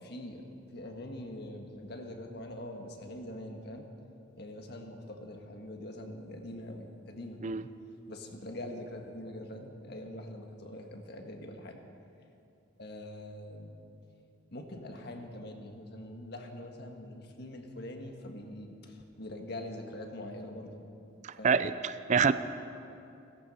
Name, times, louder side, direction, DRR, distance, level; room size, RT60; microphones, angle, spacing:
voice 1, 0.0-3.8 4.3-7.4 8.1-11.8 12.8-13.7 14.5-20.8 21.4-21.6, left 1 dB, 60° left, 3 dB, 1.6 m, -43 dB
voice 2, 21.4-22.3, right 5 dB, 40° right, 13 dB, 0.4 m, -26 dB
16.5 x 14.0 x 5.6 m, 2.7 s
head